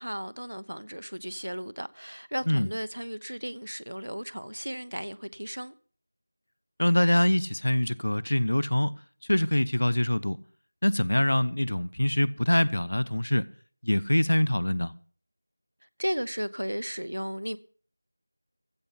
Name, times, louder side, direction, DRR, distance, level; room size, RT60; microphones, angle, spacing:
voice 1, 0.0-5.7 16.0-17.6, equal, 75° right, 0.9 m, -35 dB
voice 2, 6.8-9.0 9.3-10.4 10.8-13.5 13.8-14.9, left 1 dB, 65° left, 0.6 m, -24 dB
15.5 x 5.6 x 9.7 m
figure-of-eight pair, 170°, 0 cm